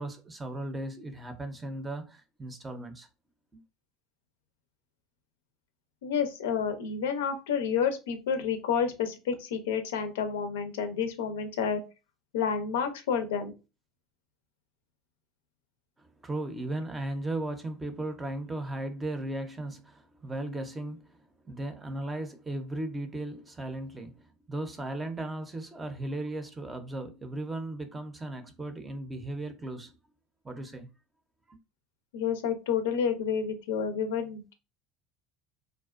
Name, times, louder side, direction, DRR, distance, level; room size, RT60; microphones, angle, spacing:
voice 1, 0.0-3.1 3.5-3.6 16.2-21.2 21.5-30.0 30.4-30.9 31.5-31.6, right 1 dB, 20° right, 0.5 m, -36 dB
voice 2, 6.0-11.8 12.3-13.5 32.1-34.5, left 7 dB, 90° left, 0.4 m, -29 dB
2.4 x 2.1 x 2.4 m
supercardioid pair, 100°, 0 cm